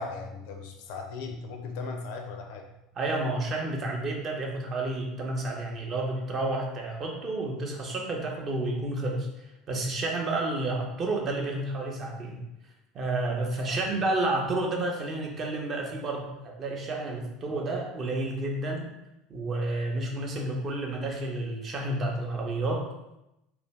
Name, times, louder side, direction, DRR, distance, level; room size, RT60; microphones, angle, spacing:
voice 1, 0.0-2.7 13.7-14.0, left 4 dB, 60° left, 4 dB, 0.4 m, -38 dB
voice 2, 3.0-12.4 12.9-18.9 19.3-22.8, right 2 dB, 35° right, 0 dB, 0.6 m, -30 dB
2.4 x 2.2 x 3.1 m, 0.90 s
figure-of-eight pair, 70°, 0 cm